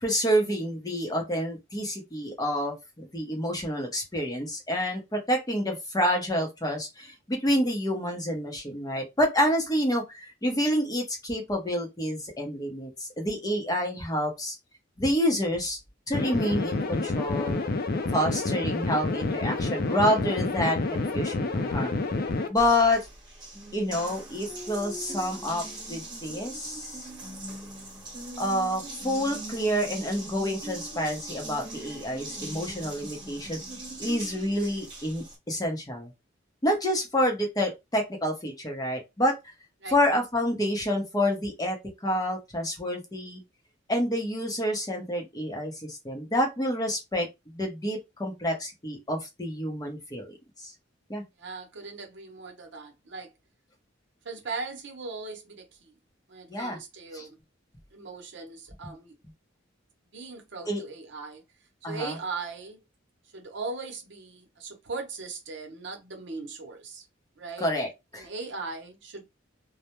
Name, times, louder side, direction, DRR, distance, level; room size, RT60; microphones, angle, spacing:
voice 1, 0.0-14.6 15.0-15.8 16.1-17.6 18.1-21.9 22.5-23.1 23.7-27.1 28.4-33.6 34.0-36.1 36.6-39.4 39.9-43.4 43.9-47.3 47.5-50.7 51.1-51.2 56.5-56.8 57.1-57.3 60.7-60.8 61.8-62.2 67.6-68.3, equal, 20° left, 0.7 m, -28 dB
sound 1, 16.1-22.5, left 3 dB, 55° left, 0.4 m, -29 dB
Water tap faucet, 22.6-35.4, right 2 dB, 20° right, 1.1 m, -40 dB
voice 2, 51.4-53.3 54.2-55.9 56.3-57.4 57.9-59.2 60.1-61.4 61.8-62.8 63.3-67.1 67.4-67.7 68.2-69.2, right 4 dB, 65° right, 0.7 m, -39 dB
2.2 x 2.1 x 2.9 m
head